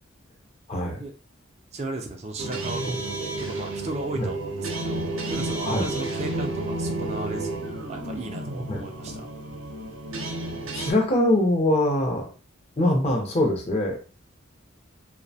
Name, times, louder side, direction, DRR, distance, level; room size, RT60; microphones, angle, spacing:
voice 1, 0.7-1.0 4.2-4.3 5.6-5.9 8.7-8.8 10.7-12.3 12.8-14.0, left 1 dB, 30° left, 1 dB, 0.5 m, -23 dB
voice 2, 1.7-9.3, right 2 dB, 30° right, 4 dB, 0.4 m, -35 dB
sound 1, 2.4-10.9, right 2 dB, 80° right, 0.6 m, -31 dB
2.5 x 2.0 x 2.7 m, 0.35 s
head